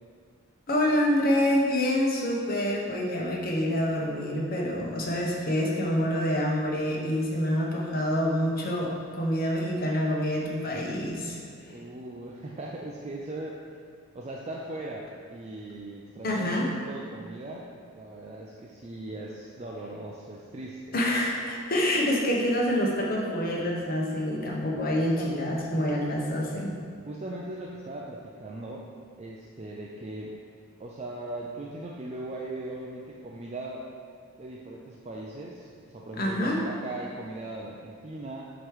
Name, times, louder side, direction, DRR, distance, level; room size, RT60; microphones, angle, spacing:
voice 1, 0.7-11.4 16.2-16.7 20.9-26.8 36.2-36.6, equal, 45° left, -2 dB, 1.0 m, -27 dB
voice 2, 11.7-13.6 14.1-21.0 24.9-25.3 25.7-25.9 27.1-28.9 29.2-30.4 30.8-33.9 34.4-38.4, right 2 dB, 30° right, -3 dB, 0.4 m, -39 dB
7.8 x 3.1 x 4.8 m, 2.1 s
head